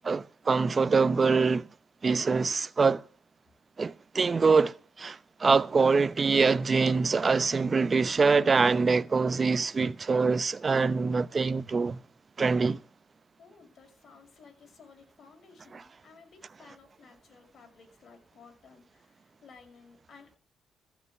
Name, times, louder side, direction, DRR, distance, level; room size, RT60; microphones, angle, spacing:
voice 1, 0.0-1.7 2.0-3.0 3.8-12.0 12.4-12.8, right 4 dB, 35° right, 0.8 m, -24 dB
voice 2, 13.4-20.4, left 5 dB, 55° left, 6.1 m, -55 dB
14.5 x 5.9 x 9.4 m
cardioid pair, 90°, 0 cm